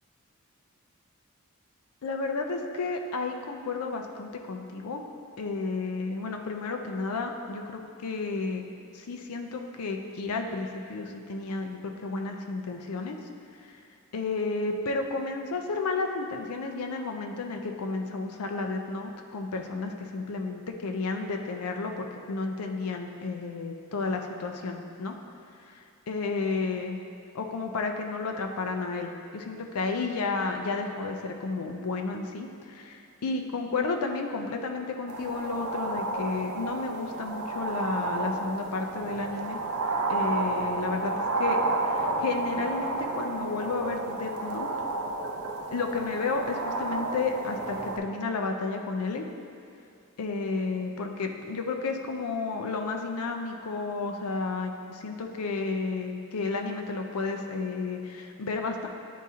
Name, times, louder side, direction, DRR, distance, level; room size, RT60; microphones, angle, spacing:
voice 1, 2.0-5.0 5.4-8.6 8.9-13.2 14.1-25.1 25.7-27.0 27.3-39.6 40.1-41.6 41.8-44.7 45.7-49.2 50.2-58.9, left 3 dB, 85° left, 3 dB, 0.5 m, -32 dB
sound 1, 35.1-48.0, right 2 dB, 75° right, 0.5 m, -31 dB
9.8 x 3.7 x 2.8 m, 2.6 s
head